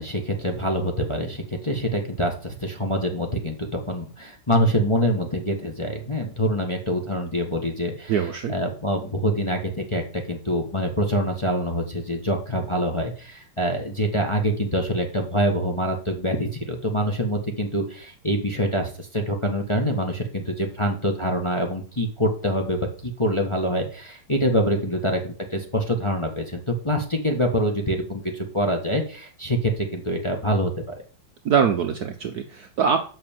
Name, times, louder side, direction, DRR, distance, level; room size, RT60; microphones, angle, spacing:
voice 1, 0.0-30.9, equal, 15° left, 1 dB, 1.2 m, -25 dB
voice 2, 8.1-8.6 31.4-33.1, right 7 dB, 65° right, 6 dB, 1.0 m, -23 dB
7.7 x 5.8 x 7.4 m, 0.41 s
omnidirectional pair, 2.3 m